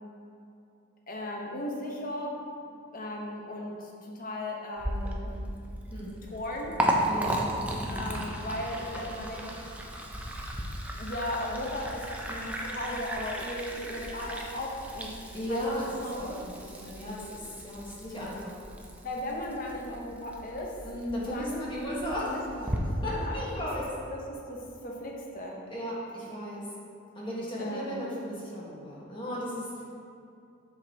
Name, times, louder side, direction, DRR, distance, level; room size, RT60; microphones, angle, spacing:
voice 1, 1.1-2.4 2.9-5.6 6.3-6.8 7.9-9.5 11.0-15.1 15.5-16.4 19.0-20.7 21.3-21.7 22.1-23.4 24.1-25.6 27.6-28.0, left 1 dB, 45° left, -1 dB, 1.0 m, -36 dB
Liquid, 4.8-22.8, right 1 dB, 5° right, 0.5 m, -36 dB
voice 2, 7.1-7.6 15.3-18.6 20.8-22.4 22.8-23.9 25.7-26.7 27.1-29.8, equal, 25° left, -7 dB, 1.5 m, -35 dB
7.7 x 6.2 x 2.9 m, 2.6 s
head